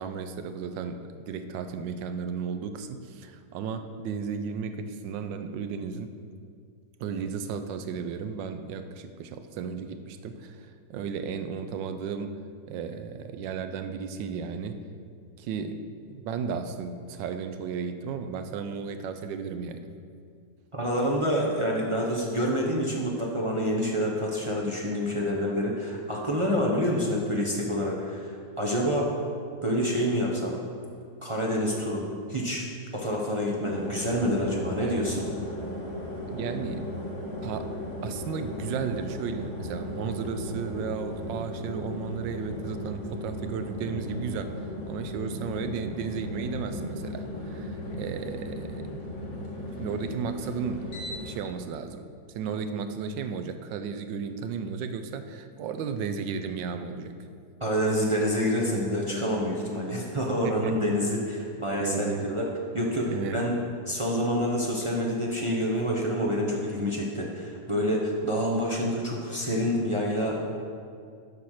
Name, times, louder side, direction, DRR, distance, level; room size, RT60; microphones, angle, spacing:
voice 1, 0.0-6.1 7.0-12.4 12.7-14.8 15.4-19.9 34.8-35.0 36.3-37.0 37.4-37.8 38.0-48.9 49.8-57.1 60.4-60.7 61.8-62.3 63.1-63.4, right 6 dB, 90° right, 9 dB, 1.3 m, -34 dB
voice 2, 20.7-29.1 29.6-30.5 31.2-32.6 32.9-35.3 57.6-62.5 62.7-63.5 63.9-70.4, equal, 30° right, -3 dB, 0.6 m, -27 dB
sound 1, 33.6-51.4, left 1 dB, 90° left, 2.3 m, -36 dB
7.3 x 5.8 x 6.4 m, 2.3 s
omnidirectional pair, 1.9 m